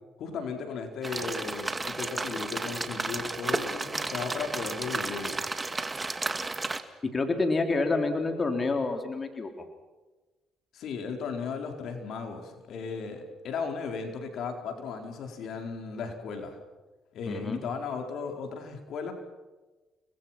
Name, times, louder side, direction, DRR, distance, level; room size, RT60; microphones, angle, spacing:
voice 1, 0.2-5.4 10.7-16.6 17.1-19.1, left 5 dB, 70° left, 5 dB, 4.7 m, -36 dB
sound 1, 1.0-6.8, right 3 dB, 20° right, 2.1 m, -33 dB
voice 2, 7.1-9.5 17.3-17.6, left 3 dB, 30° left, 5 dB, 3.6 m, -28 dB
30.0 x 21.0 x 6.0 m, 1.2 s
cardioid pair, 95°, 0 cm